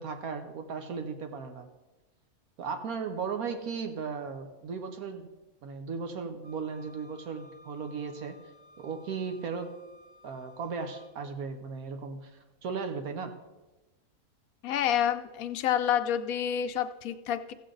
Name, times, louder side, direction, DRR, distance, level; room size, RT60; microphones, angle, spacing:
voice 1, 0.0-1.7 2.6-5.3 5.6-8.4 8.8-9.7 10.2-12.3 12.6-13.3, right 5 dB, 80° right, 6 dB, 1.3 m, -36 dB
Wind instrument woodwind instrument, 6.4-11.1, left 1 dB, 35° right, 0.8 m, -57 dB
voice 2, 14.6-17.5, left 9 dB, 75° left, 9 dB, 1.0 m, -28 dB
15.0 x 7.4 x 3.8 m, 1.1 s
omnidirectional pair, 1.5 m